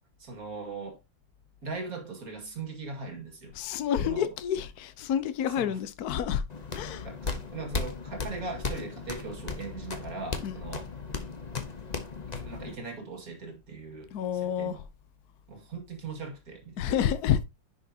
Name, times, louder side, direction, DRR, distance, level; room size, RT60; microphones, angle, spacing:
voice 1, 0.2-1.0 1.6-3.5 4.0-4.3 5.6-5.8 7.0-10.9 12.3-14.8 15.5-17.0, right 4 dB, 50° right, 2.4 m, -40 dB
voice 2, 3.5-6.4 6.7-7.1 10.4-10.5 14.1-14.8 16.8-17.4, left 9 dB, 60° left, 1.2 m, -29 dB
sound 1, 6.5-12.8, left 4 dB, 30° left, 0.8 m, -36 dB
10.0 x 6.0 x 2.8 m
omnidirectional pair, 2.1 m